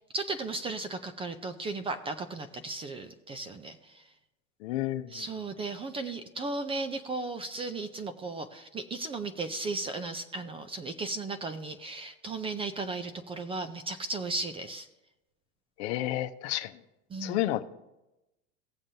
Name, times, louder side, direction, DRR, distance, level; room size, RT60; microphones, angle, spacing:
voice 1, 0.0-4.0 5.1-14.9 17.1-17.4, right 3 dB, 15° right, 9 dB, 0.4 m, -35 dB
voice 2, 4.6-5.1 15.8-16.7 17.2-17.6, left 14 dB, 60° left, 10 dB, 0.8 m, -30 dB
18.5 x 7.3 x 2.7 m, 0.96 s
hypercardioid pair, 120°, 38 cm